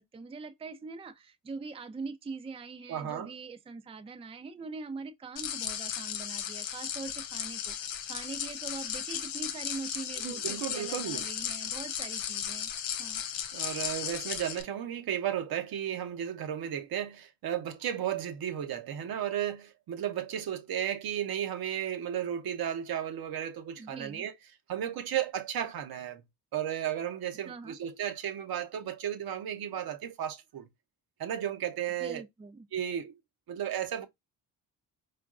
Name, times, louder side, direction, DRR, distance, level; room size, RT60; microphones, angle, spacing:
voice 1, 0.0-12.7 13.0-13.2 23.8-24.3 27.4-27.8 32.0-32.7, right 4 dB, 15° right, 0.5 m, -43 dB
voice 2, 2.9-3.3 10.2-11.2 13.5-24.3 24.7-26.2 26.5-30.7 31.2-32.2 32.7-33.2 33.5-34.1, right 10 dB, 55° right, 0.8 m, -34 dB
sound 1, 5.4-14.6, left 9 dB, 80° left, 0.7 m, -36 dB
4.4 x 2.4 x 2.3 m
hypercardioid pair, 50°, 44 cm